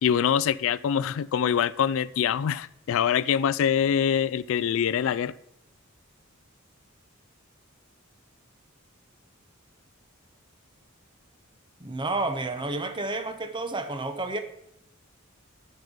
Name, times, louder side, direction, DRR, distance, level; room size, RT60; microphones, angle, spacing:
voice 1, 0.0-5.3, left 8 dB, 70° left, 0.3 m, -24 dB
voice 2, 11.8-14.4, right 2 dB, 25° right, 0.8 m, -30 dB
9.2 x 5.5 x 5.2 m
head